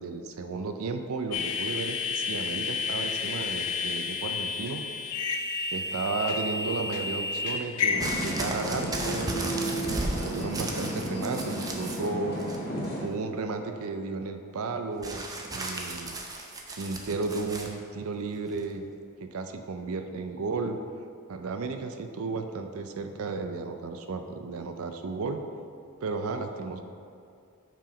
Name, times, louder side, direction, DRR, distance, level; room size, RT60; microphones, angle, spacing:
voice 1, 0.0-4.8 5.7-9.3 9.7-12.3 13.0-15.2 15.5-16.2 16.7-18.9 19.2-20.8 21.3-25.4 26.0-26.8, right 3 dB, 65° right, 7 dB, 0.5 m, -34 dB
sound 1, 1.3-8.9, left 5 dB, 90° left, 0.5 m, -31 dB
sound 2, 7.9-13.0, right 1 dB, 45° left, 1.5 m, -33 dB
sound 3, 8.0-12.1 12.4-13.0 15.0-17.7 18.6-18.7, right 2 dB, 15° right, 0.6 m, -35 dB
6.0 x 4.9 x 5.0 m, 2.4 s
head